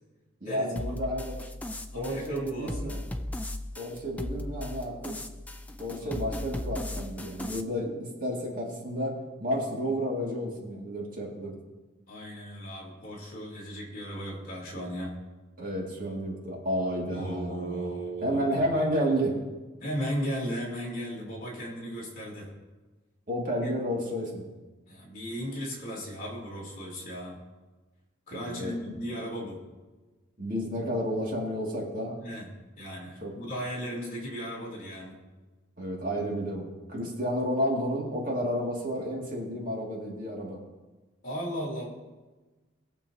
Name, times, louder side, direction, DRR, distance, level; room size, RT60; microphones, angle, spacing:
voice 1, 0.4-1.4 1.9-3.0 3.8-5.1 5.8-11.5 15.6-17.9 18.2-19.3 23.3-24.5 28.3-28.8 30.4-32.2 33.2-33.3 35.8-40.6, equal, 40° right, -3 dB, 2.2 m, -31 dB
sound 1, 0.8-7.6, left 1 dB, 5° left, 0.3 m, -37 dB
voice 2, 1.9-2.9 5.9-6.2 12.1-15.2 17.1-18.5 19.8-22.5 23.6-23.7 24.9-27.4 28.3-29.6 32.2-32.5 32.8-35.2 41.2-41.9, equal, 40° left, -4 dB, 3.2 m, -36 dB
21.0 x 7.1 x 2.8 m, 1.2 s
head